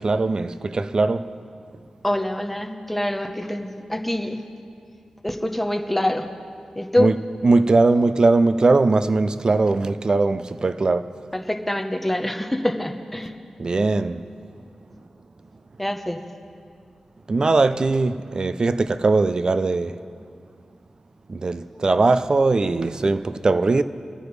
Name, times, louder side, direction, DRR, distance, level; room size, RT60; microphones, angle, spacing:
voice 1, 0.0-1.3 7.0-7.2 7.4-11.1 13.6-14.2 17.3-20.0 21.3-23.8, right 3 dB, 40° right, 0.4 m, -20 dB
voice 2, 2.0-4.4 5.2-6.3 6.8-7.1 11.3-13.3 15.8-16.2, left 1 dB, 5° left, 0.8 m, -25 dB
26.0 x 9.8 x 3.2 m
wide cardioid pair, 120°, 2 cm